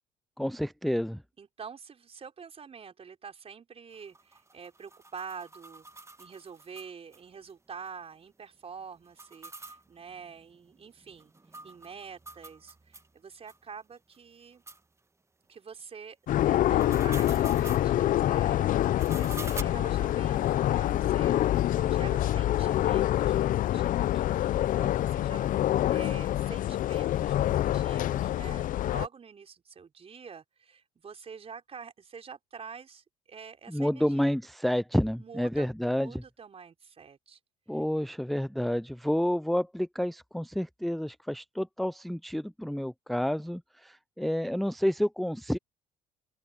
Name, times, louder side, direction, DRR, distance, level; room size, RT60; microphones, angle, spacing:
voice 1, 0.4-1.2 33.7-36.2 37.7-45.6, equal, ahead, 0.6 m, -29 dB
voice 2, 1.4-11.3 11.6-14.6 15.5-25.6 25.9-34.3 35.2-35.7 35.9-37.4 37.7-37.8, right 6 dB, 35° right, 4.7 m, -47 dB
sound 1, 3.9-7.2 7.5-7.6 7.9-8.0 9.1-13.1 13.5-13.6 14.1-14.2 14.7-14.8 16.5-17.9 18.8-19.6, right 2 dB, 15° right, 1.7 m, -46 dB
sound 2, 16.3-29.1, left 13 dB, 55° left, 0.9 m, -26 dB
open air
hypercardioid pair, 65°, 17 cm